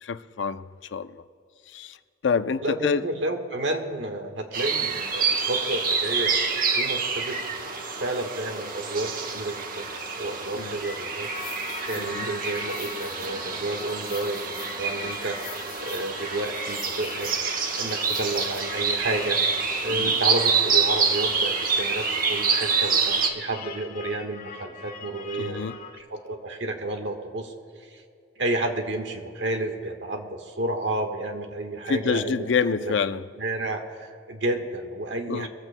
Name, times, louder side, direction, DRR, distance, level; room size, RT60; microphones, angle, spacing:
voice 1, 0.0-0.6 0.9-1.2 1.7-2.0 2.2-3.1 10.6-10.7 12.0-12.3 19.9-20.2 25.4-25.8 31.9-33.3 35.3-35.5, left 5 dB, 80° left, 0.5 m, -27 dB
voice 2, 2.6-6.4 6.8-7.4 8.0-9.9 10.2-11.3 11.9-17.4 17.8-25.7 26.0-27.5 27.8-28.0 28.4-32.5 32.8-32.9 33.4-35.5, right 2 dB, 75° right, 1.4 m, -31 dB
sound 1, 4.5-23.3, right 5 dB, 50° right, 1.1 m, -27 dB
sound 2, 11.2-26.0, left 6 dB, 50° left, 1.6 m, -41 dB
23.0 x 15.0 x 2.2 m
head